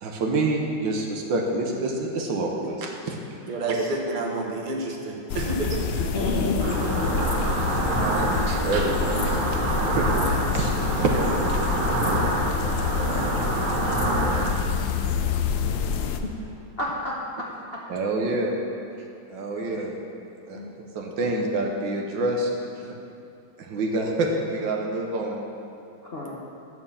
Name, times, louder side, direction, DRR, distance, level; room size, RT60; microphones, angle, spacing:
voice 1, 0.0-3.2 7.8-8.2 8.5-10.1 10.5-10.7 11.0-11.2 12.1-12.2 17.9-18.6 19.3-19.9 20.5-20.6 20.9-22.5 22.8-22.9 23.6-25.4, right 2 dB, 65° right, 1 dB, 1.6 m, -27 dB
voice 2, 3.5-6.1, right 2 dB, 40° right, -1 dB, 0.7 m, -29 dB
sound 1, 5.3-16.2, left 6 dB, 80° left, 0.8 m, -27 dB
voice 3, 6.1-7.1 16.2-16.3 16.8-17.1 17.7-17.8 20.5-20.8 26.0-26.4, left 2 dB, 50° left, -4 dB, 0.7 m, -29 dB
sound 2, 6.6-14.5, right 3 dB, 85° right, 2.0 m, -27 dB
11.5 x 4.4 x 7.1 m, 2.6 s
omnidirectional pair, 2.3 m